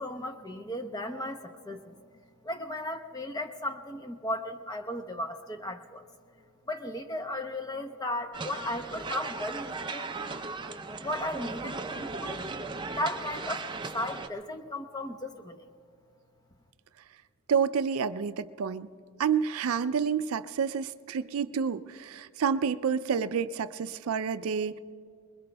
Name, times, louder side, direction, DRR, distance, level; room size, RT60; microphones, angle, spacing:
voice 1, 0.0-2.0 2.4-6.1 6.7-10.4 11.0-12.5 12.9-15.7, left 1 dB, 15° left, 5 dB, 0.7 m, -36 dB
sound 1, 8.3-14.3, right 3 dB, 20° right, 0.5 m, -37 dB
voice 2, 17.5-18.9 19.2-24.8, right 6 dB, 75° right, 13 dB, 0.4 m, -29 dB
25.0 x 21.5 x 2.2 m, 2.2 s
head